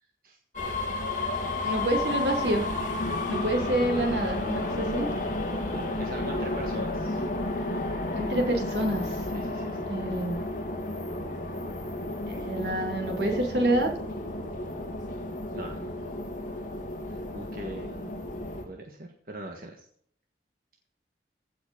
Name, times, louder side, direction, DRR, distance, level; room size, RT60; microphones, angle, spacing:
sound 1, 0.5-18.6, left 2 dB, 45° left, 3.3 m, -32 dB
voice 1, 1.6-2.6 3.3-5.1 8.1-9.0 9.9-10.4 12.3-13.9, right 1 dB, 75° right, 2 dB, 3.0 m, -27 dB
voice 2, 3.5-4.4 5.7-7.2 9.2-9.9 15.5-15.9 17.1-18.3 18.6-19.9, right 1 dB, 50° right, 1 dB, 1.7 m, -41 dB
15.5 x 6.1 x 5.5 m, 0.63 s
head